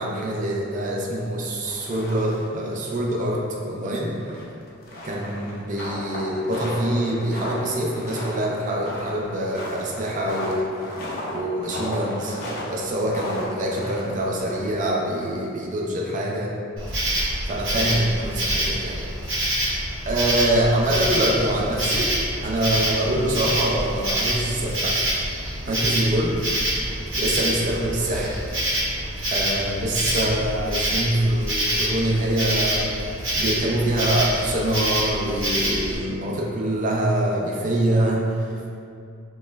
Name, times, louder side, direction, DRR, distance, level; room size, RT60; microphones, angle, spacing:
voice 1, 0.0-4.4 5.0-10.9 11.3-16.5 17.4-19.0 20.1-22.1 22.4-25.2 25.7-26.4 27.2-28.4 29.3-38.5, right 1 dB, 35° right, -2 dB, 0.4 m, -25 dB
sound 1, 1.5-2.6 2.8-2.9 3.3-3.4 4.2-14.9, left 1 dB, 45° left, 0.6 m, -34 dB
Insect, 16.8-35.9, right 1 dB, 65° right, 0.9 m, -26 dB
4.9 x 2.2 x 2.2 m, 2.4 s
head